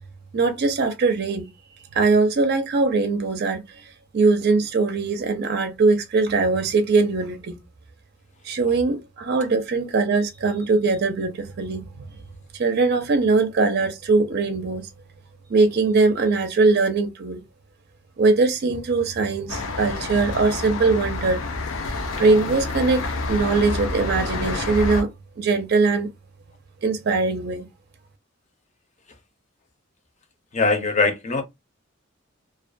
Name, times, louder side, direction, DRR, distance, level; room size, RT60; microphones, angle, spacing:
voice 1, 0.3-1.5 1.9-3.8 4.1-7.6 8.4-11.8 12.5-14.9 15.5-17.4 18.2-21.4 22.2-25.1 25.4-26.1 26.8-27.7, right 3 dB, 50° right, 0.5 m, -21 dB
sound 1, 19.5-25.0, left 3 dB, 80° left, 0.5 m, -28 dB
voice 2, 30.5-31.4, left 3 dB, 35° left, 0.6 m, -21 dB
2.3 x 2.1 x 2.5 m
head